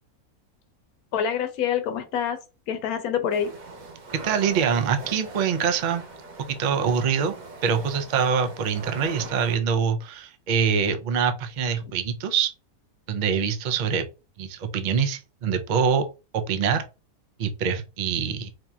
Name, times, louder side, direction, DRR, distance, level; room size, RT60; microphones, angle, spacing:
voice 1, 1.1-2.4 2.7-3.5, left 8 dB, 80° left, 1.1 m, -26 dB
sound 1, 3.3-9.6, right 3 dB, 70° right, 1.3 m, -40 dB
voice 2, 4.2-6.0 6.4-7.3 7.6-12.5 13.1-14.1 14.4-16.1 16.3-16.8 17.4-18.5, right 6 dB, 90° right, 0.4 m, -24 dB
4.4 x 2.8 x 2.3 m
omnidirectional pair, 1.6 m